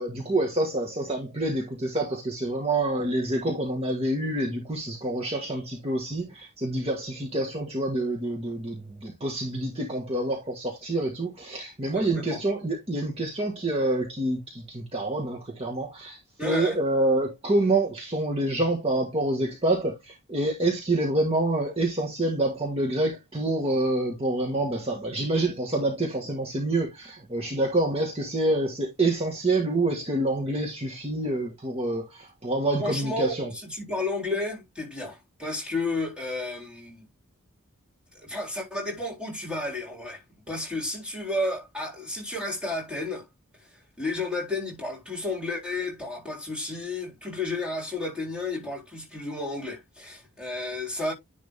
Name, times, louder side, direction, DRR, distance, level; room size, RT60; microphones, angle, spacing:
voice 1, 0.0-33.5, right 2 dB, 30° right, 1.7 m, -27 dB
voice 2, 11.9-12.4 16.4-16.8 32.8-37.0 38.1-40.2 40.5-43.3 44.0-51.1, left 2 dB, 5° right, 3.9 m, -32 dB
10.5 x 3.8 x 3.6 m
head